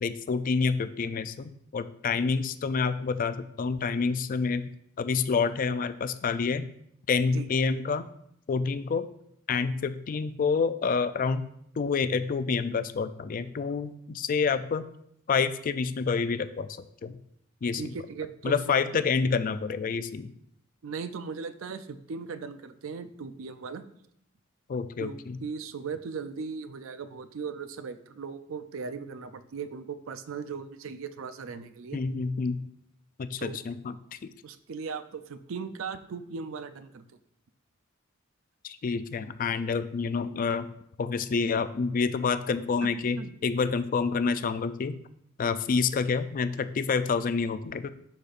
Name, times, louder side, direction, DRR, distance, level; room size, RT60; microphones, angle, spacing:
voice 1, 0.0-4.7 5.0-6.7 7.1-8.1 8.5-9.1 9.5-11.5 11.8-14.8 15.3-16.7 17.0-17.2 17.6-18.0 18.4-20.3 24.7-25.4 31.9-32.7 33.2-33.9 34.2-34.3 38.6-40.7 41.0-45.0 45.4-47.9, left 5 dB, 40° left, 11 dB, 0.3 m, -28 dB
voice 2, 17.7-18.5 20.8-23.8 25.0-32.0 33.4-33.6 34.4-37.0 42.8-42.9 43.2-43.3, right 5 dB, 65° right, 11 dB, 0.5 m, -38 dB
11.5 x 4.2 x 2.5 m, 0.73 s
head